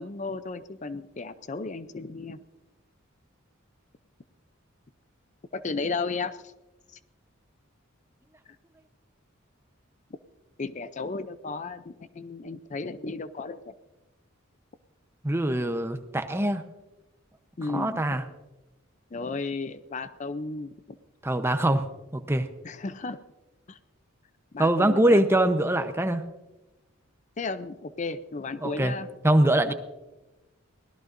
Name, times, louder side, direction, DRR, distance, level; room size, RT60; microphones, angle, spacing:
voice 1, 0.0-2.4 5.5-6.4 10.6-13.7 17.6-18.0 19.1-20.7 22.6-23.2 23.7-23.8 24.5-25.2 27.4-29.1 29.7-29.8, left 3 dB, 35° left, 13 dB, 0.5 m, -34 dB
voice 2, 15.2-16.6 17.7-18.2 21.2-21.9 22.1-22.5 24.6-26.2 28.6-28.9 29.2-29.7, right 1 dB, 10° right, 8 dB, 0.8 m, -23 dB
23.0 x 17.0 x 2.6 m, 1.1 s
head